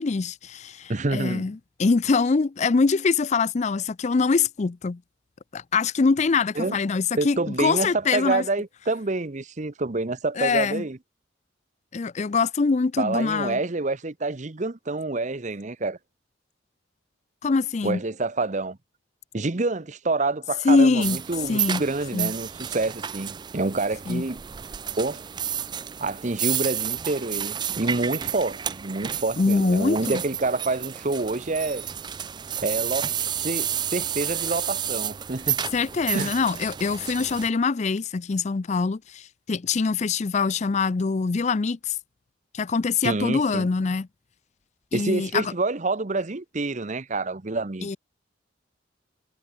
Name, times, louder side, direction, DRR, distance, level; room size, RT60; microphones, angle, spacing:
voice 1, 0.0-5.0 5.5-8.4 10.4-10.8 11.9-13.6 17.4-18.0 20.6-21.2 21.5-21.8 22.1-22.3 24.1-24.2 29.4-30.2 35.7-42.0 42.5-44.1 44.9-45.5 47.8-48.0, left 4 dB, 35° left, 0.4 m, -24 dB
voice 2, 0.9-1.5 6.6-6.8 7.2-11.0 13.0-16.0 17.8-18.8 19.3-24.4 25.0-25.2 26.0-31.9 32.6-35.6 36.1-36.3 43.0-43.7 44.9-48.0, right 3 dB, 40° right, 0.9 m, -27 dB
sound 1, 21.0-37.5, right 9 dB, 25° right, 0.4 m, -31 dB
head